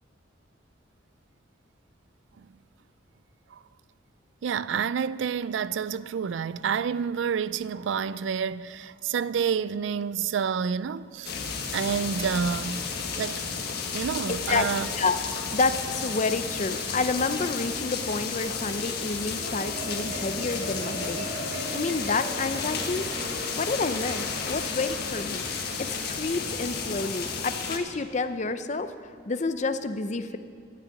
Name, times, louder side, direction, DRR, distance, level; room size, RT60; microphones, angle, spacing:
voice 1, 4.4-11.3 11.7-12.9 13.2-13.4 13.9-14.9, right 7 dB, 70° right, 0.4 m, -29 dB
sound 1, 11.2-27.8, left 5 dB, 55° left, 1.5 m, -32 dB
voice 2, 15.5-21.3 21.7-23.1 23.6-25.4 25.8-28.9 29.3-30.4, left 3 dB, 35° left, 0.6 m, -29 dB
Marimba xylophone, 19.1-25.7, right 1 dB, 55° right, 3.3 m, -39 dB
13.0 x 8.8 x 9.4 m
head